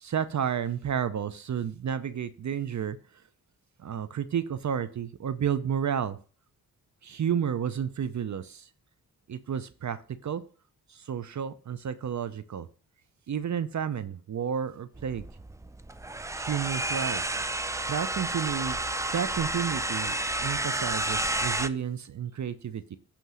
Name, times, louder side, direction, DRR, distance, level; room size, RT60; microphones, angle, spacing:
voice 1, 0.0-3.0 3.8-6.2 7.0-8.7 9.3-10.4 10.9-12.7 13.3-15.2 16.3-17.2 17.9-18.8 19.1-23.0, right 8 dB, 50° right, 13 dB, 0.6 m, -31 dB
sound 1, 15.0-21.7, right 2 dB, 10° right, 0.4 m, -31 dB
7.9 x 3.0 x 6.2 m, 0.40 s
cardioid pair, 50°, 39 cm